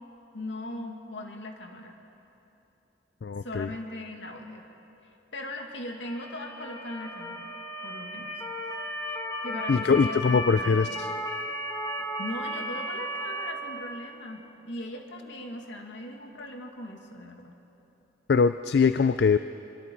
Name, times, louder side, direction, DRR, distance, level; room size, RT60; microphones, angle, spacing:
voice 1, 0.3-1.9 3.4-4.6 5.3-7.5 7.8-8.7 9.0-10.8 12.2-17.5, left 1 dB, 80° left, 2 dB, 2.1 m, -39 dB
voice 2, 3.2-3.7 9.7-11.1 18.3-19.4, left 5 dB, 60° left, 12 dB, 0.4 m, -22 dB
Motor vehicle (road) / Siren, 6.1-13.5, equal, 20° left, 2.2 m, -34 dB
24.5 x 23.5 x 4.6 m, 3.0 s
head